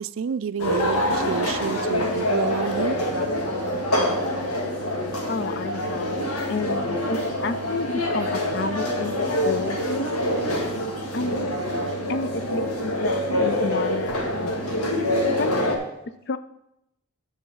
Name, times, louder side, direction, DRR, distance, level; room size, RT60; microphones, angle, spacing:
voice 1, 0.0-3.0, right 6 dB, 65° right, 15 dB, 0.3 m, -29 dB
sound 1, 0.6-15.8, left 1 dB, 85° left, 1.6 m, -25 dB
voice 2, 5.3-10.1 11.1-11.5 12.1-14.5 15.4-15.8 16.3-16.4, left 4 dB, 50° left, 12 dB, 0.4 m, -31 dB
10.0 x 3.9 x 7.0 m, 0.85 s
head